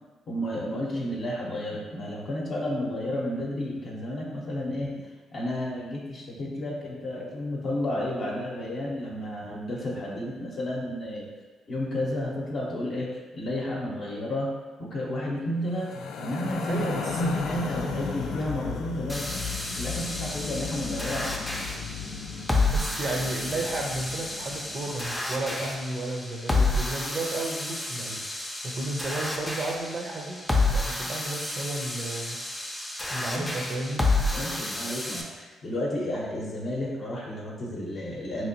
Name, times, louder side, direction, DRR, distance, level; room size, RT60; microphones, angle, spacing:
voice 1, 0.3-11.3 11.7-14.5 14.8-19.4 19.8-21.3 33.3-33.6 34.3-38.5, left 1 dB, 55° left, -4 dB, 0.7 m, -32 dB
sound 1, 15.7-25.1, left 6 dB, 75° left, 0.4 m, -35 dB
voice 2, 16.7-17.5 17.8-18.0 22.7-30.4 30.7-32.4 33.1-34.1, right 2 dB, 50° right, 1 dB, 0.6 m, -33 dB
sound 2, 19.1-35.2, left 2 dB, 10° left, 0.5 m, -30 dB
3.6 x 2.9 x 2.8 m, 1.3 s
cardioid pair, 90°, 0 cm